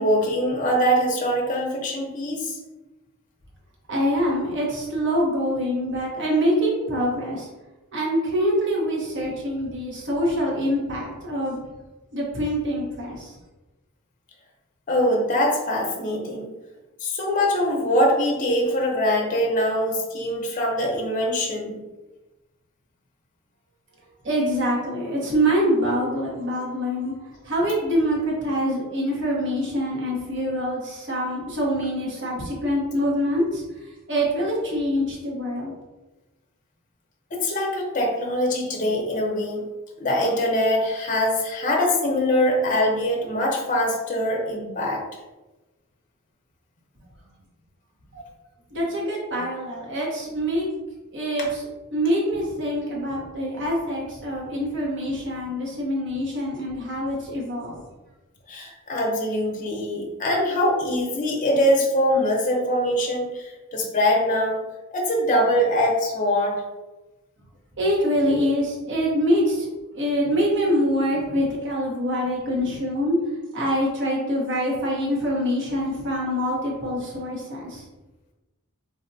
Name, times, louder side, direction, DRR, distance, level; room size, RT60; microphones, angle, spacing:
voice 1, 0.0-2.6 14.9-16.5 17.0-21.8 37.3-39.6 40.0-45.0 58.5-64.6 64.9-66.6, equal, 35° left, -1 dB, 0.6 m, -23 dB
voice 2, 3.9-7.5 7.9-11.6 12.1-13.3 24.2-35.7 48.1-48.3 48.7-50.7 51.1-57.7 67.8-69.7 69.9-73.2 73.5-77.8, equal, 55° right, -3 dB, 0.8 m, -25 dB
4.1 x 2.2 x 2.5 m, 1.1 s
head